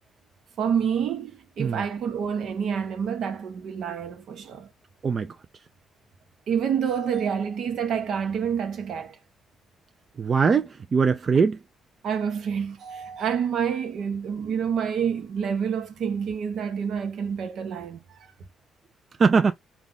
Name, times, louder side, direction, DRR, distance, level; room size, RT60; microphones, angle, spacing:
voice 1, 0.6-4.7 6.5-9.2 12.0-18.3, right 7 dB, 70° right, 1.0 m, -28 dB
voice 2, 10.2-11.6 19.2-19.5, right 5 dB, 40° right, 0.4 m, -21 dB
3.4 x 2.3 x 3.9 m
cardioid pair, 90°, 0 cm